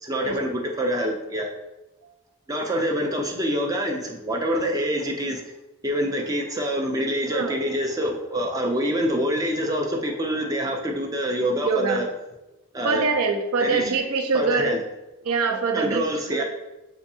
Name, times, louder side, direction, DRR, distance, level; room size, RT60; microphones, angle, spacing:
voice 1, 0.0-1.5 2.5-5.4 5.8-12.1 12.7-13.1 13.6-13.9 14.3-14.8 15.7-16.4, equal, 15° right, 2 dB, 0.4 m, -26 dB
voice 2, 11.6-12.0 12.8-14.8 15.2-16.0 16.3-16.4, right 4 dB, 80° right, 7 dB, 0.5 m, -24 dB
7.0 x 2.6 x 2.7 m, 1.0 s
head